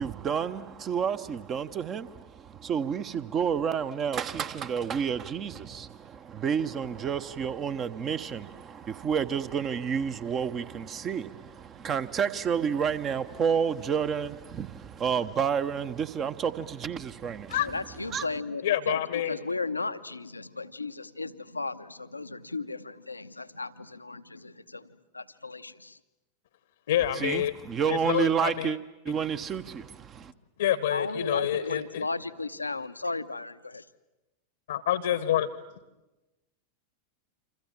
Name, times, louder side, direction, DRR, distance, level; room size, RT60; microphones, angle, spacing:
voice 1, 0.0-17.6 18.1-18.3 27.1-28.8 29.0-30.3, right 7 dB, 30° right, 1.2 m, -30 dB
voice 2, 17.6-24.9 25.1-26.0 30.9-33.8, left 3 dB, 80° left, 0.9 m, -35 dB
voice 3, 18.6-19.4 26.9-27.5 27.9-28.7 30.6-32.1 34.7-35.5, left 12 dB, 60° left, 1.1 m, -27 dB
28.0 x 26.5 x 7.5 m
figure-of-eight pair, 90°, 0 cm